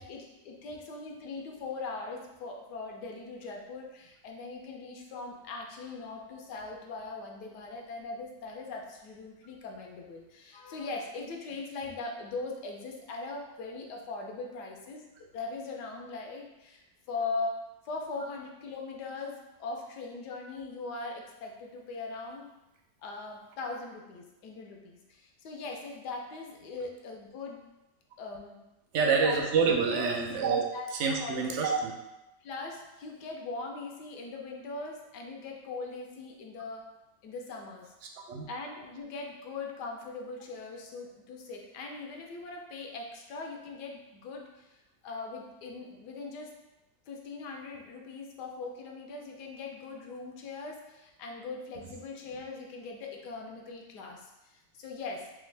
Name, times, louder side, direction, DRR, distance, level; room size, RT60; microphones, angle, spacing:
voice 1, 0.0-17.6 17.8-22.5 23.0-27.6 28.2-28.6 29.2-29.4 29.9-30.0 30.7-30.9 31.2-31.5 32.4-36.9 37.2-37.9 38.5-46.5 47.1-55.4, left 3 dB, 80° left, 1 dB, 1.2 m, -40 dB
voice 2, 28.9-30.6 30.9-31.9 38.3-38.5, right 5 dB, 70° right, 1 dB, 0.6 m, -27 dB
3.5 x 2.8 x 3.2 m, 0.97 s
omnidirectional pair, 1.7 m